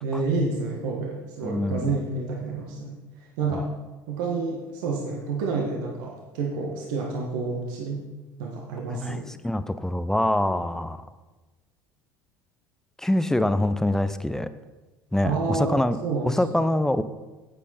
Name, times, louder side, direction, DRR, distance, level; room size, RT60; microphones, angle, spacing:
voice 1, 0.0-3.0 3.4-3.7 4.1-8.1 8.4-9.2 15.2-16.4, right 4 dB, 65° right, -1 dB, 1.6 m, -29 dB
voice 2, 1.4-2.0 3.5-3.7 8.9-11.0 13.0-14.5 15.1-16.0 16.2-17.0, left 1 dB, 5° left, 12 dB, 0.6 m, -25 dB
10.5 x 8.4 x 4.3 m, 1.2 s
figure-of-eight pair, 65°, 11 cm